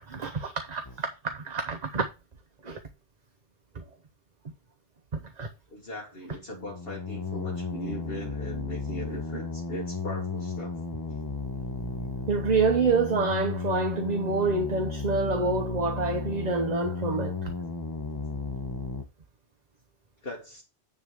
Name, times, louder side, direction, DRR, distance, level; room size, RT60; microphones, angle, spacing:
voice 1, 0.1-2.1 2.6-2.8 3.7-3.8 5.1-5.5 12.3-17.5, right 4 dB, 40° right, 1.0 m, -27 dB
sound 1, 0.8-1.0 6.5-19.0, left 4 dB, 20° left, 1.0 m, -34 dB
voice 2, 5.7-10.8 11.1-11.2 20.2-20.6, left 1 dB, 50° left, 1.7 m, -39 dB
10.0 x 3.6 x 6.5 m
omnidirectional pair, 1.2 m